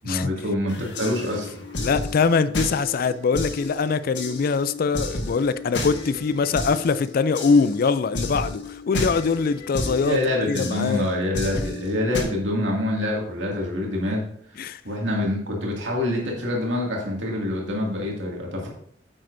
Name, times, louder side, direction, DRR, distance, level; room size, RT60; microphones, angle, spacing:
voice 1, 0.0-1.5 10.0-14.3 14.8-18.7, left 1 dB, 90° right, 2.2 m, -26 dB
sound 1, 0.7-12.2, left 2 dB, 70° left, 1.5 m, -32 dB
voice 2, 1.8-11.1 14.6-14.8, left 5 dB, 55° left, 0.4 m, -23 dB
9.3 x 7.6 x 2.6 m
head